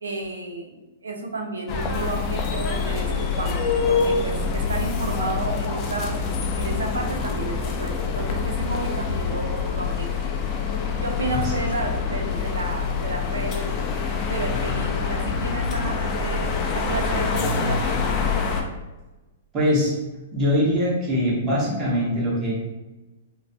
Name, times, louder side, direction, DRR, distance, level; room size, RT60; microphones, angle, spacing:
voice 1, 0.0-10.2 11.0-13.8 14.3-18.1, right 2 dB, 90° right, 2 dB, 0.5 m, -32 dB
sound 1, 1.7-18.6, left 5 dB, 35° left, 0.4 m, -25 dB
voice 2, 19.5-20.0 20.3-22.5, equal, 25° right, -6 dB, 1.3 m, -22 dB
3.0 x 2.1 x 2.7 m, 1.1 s
hypercardioid pair, 125°, 0 cm